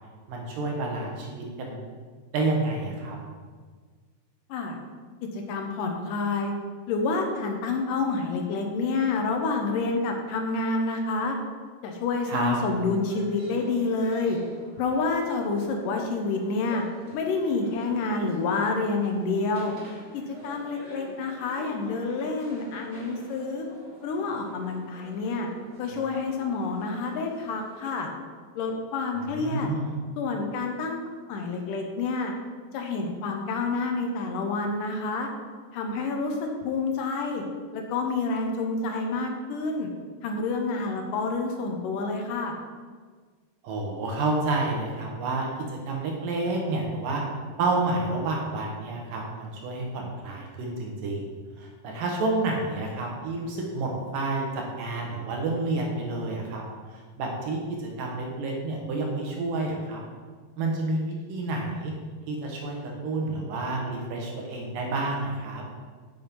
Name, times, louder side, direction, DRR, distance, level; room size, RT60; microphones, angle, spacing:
voice 1, 0.3-1.8 2.3-3.2 12.3-12.6 29.2-30.0 43.6-47.2 47.6-51.3 51.6-56.6 56.9-60.0 60.6-61.9 62.3-62.8 63.0-65.6, right 2 dB, 65° right, 0 dB, 2.5 m, -29 dB
voice 2, 5.3-6.5 6.9-11.4 11.8-14.4 14.8-16.8 17.1-19.7 20.1-23.7 24.0-25.5 25.8-28.1 28.6-29.7 30.2-31.0 31.3-32.3 32.7-35.3 35.7-37.4 37.7-39.9 40.2-42.5, left 3 dB, 75° left, 3 dB, 2.0 m, -28 dB
sound 1, 12.7-27.9, equal, 30° right, 2.9 m, -47 dB
7.9 x 6.3 x 5.3 m, 1.5 s
omnidirectional pair, 4.6 m